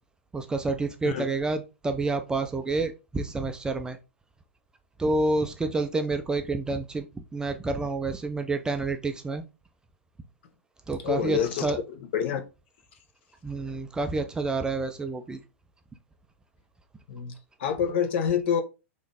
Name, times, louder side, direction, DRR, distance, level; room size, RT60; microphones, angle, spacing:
voice 1, 0.3-4.0 5.0-7.1 7.3-9.4 10.9-11.8 13.4-15.4, right 3 dB, 10° right, 0.4 m, -28 dB
voice 2, 11.0-12.4 17.1-17.3 17.6-18.6, left 8 dB, 55° left, 0.8 m, -27 dB
3.6 x 2.6 x 3.4 m
hypercardioid pair, 110°, 7 cm